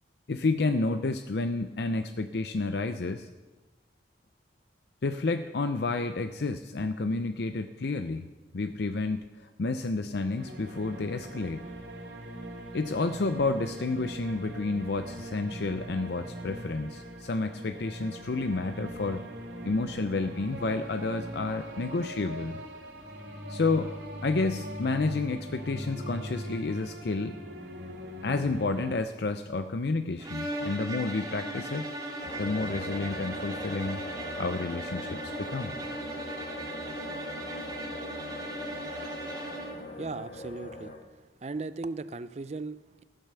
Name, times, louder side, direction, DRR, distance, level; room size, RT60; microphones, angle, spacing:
voice 1, 0.3-3.3 5.0-8.3 8.5-11.6 12.7-19.2 19.6-22.6 23.5-24.0 24.2-27.4 28.2-31.9 32.4-34.1 34.4-35.7, left 3 dB, 65° left, 9 dB, 0.5 m, -30 dB
sound 1, 10.4-28.9, equal, 80° right, 2.6 m, -41 dB
sound 2, 30.2-39.9, right 1 dB, 20° right, 1.8 m, -37 dB
sound 3, 32.2-41.0, left 1 dB, 45° left, 1.7 m, -41 dB
voice 2, 40.0-40.9 41.4-43.0, right 3 dB, 35° right, 14 dB, 0.4 m, -37 dB
13.5 x 9.1 x 6.8 m, 1.2 s
head